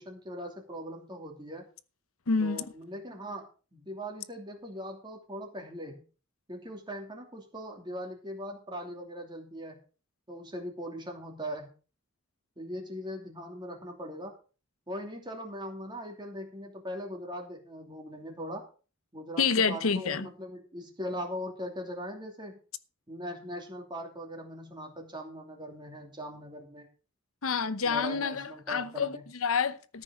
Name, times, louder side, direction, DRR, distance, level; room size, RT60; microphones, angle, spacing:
voice 1, 0.0-1.6 2.4-3.5 3.7-6.0 6.5-9.8 10.3-11.7 12.6-14.4 14.9-18.6 19.1-22.6 23.1-26.9 27.8-29.2, equal, 20° right, 2.8 m, -40 dB
voice 2, 2.3-2.7 19.4-20.3 27.4-30.0, left 5 dB, 75° left, 0.9 m, -28 dB
13.5 x 6.2 x 6.4 m
head